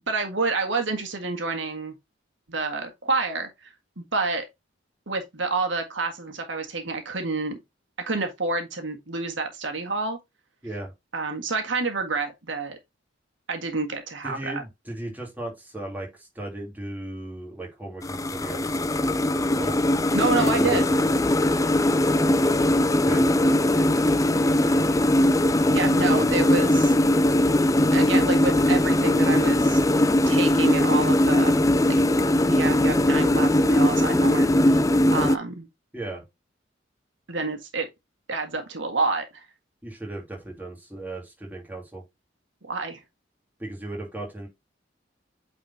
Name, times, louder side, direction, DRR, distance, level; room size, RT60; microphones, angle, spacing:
voice 1, 0.1-1.9 2.5-3.7 4.0-4.5 5.1-7.6 8.0-10.2 11.1-12.8 13.5-14.6 20.1-20.9 25.7-26.9 27.9-29.8 30.3-31.5 31.9-32.0 32.5-34.8 35.1-35.7 37.3-37.9 38.3-39.5 42.6-43.0, right 3 dB, 75° right, 1.7 m, -28 dB
voice 2, 14.2-16.1 16.3-18.9 19.6-19.9 20.3-21.1 22.9-23.3 26.1-26.2 35.9-36.2 39.8-42.0 43.6-44.5, right 2 dB, 10° right, 3.1 m, -36 dB
sound 1, 18.0-35.4, left 1 dB, 15° left, 0.5 m, -20 dB
8.9 x 4.4 x 2.8 m
head